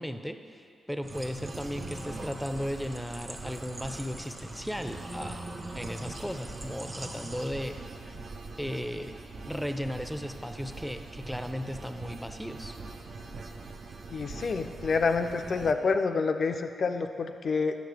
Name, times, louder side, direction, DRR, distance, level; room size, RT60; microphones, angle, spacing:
voice 1, 0.0-5.4 5.7-7.8 8.0-8.2 8.6-9.2 9.5-12.7, equal, ahead, 8 dB, 0.5 m, -36 dB
sound 1, 1.0-7.5, right 1 dB, 30° right, 1.0 m, -43 dB
sound 2, 1.1-15.7, right 3 dB, 60° right, 0.6 m, -43 dB
voice 2, 14.1-17.8, left 4 dB, 60° left, 7 dB, 0.4 m, -28 dB
8.1 x 6.4 x 3.4 m, 2.4 s
supercardioid pair, 45°, 0 cm